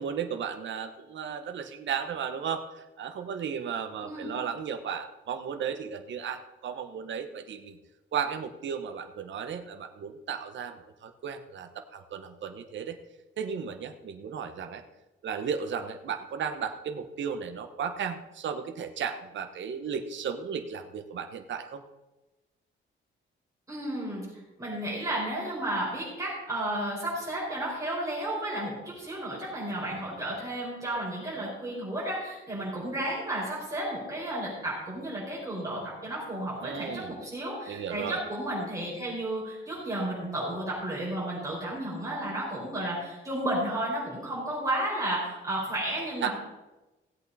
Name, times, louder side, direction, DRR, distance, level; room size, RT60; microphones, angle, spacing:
voice 1, 0.0-7.8 8.1-13.0 13.4-14.8 15.2-21.8 36.6-37.1 37.7-38.2 46.2-46.3, right 7 dB, 60° right, 6 dB, 1.0 m, -35 dB
voice 2, 23.7-24.3 24.6-46.3, right 1 dB, 15° right, -7 dB, 5.0 m, -32 dB
16.5 x 8.2 x 4.2 m, 1.0 s
cardioid pair, 135°, 21 cm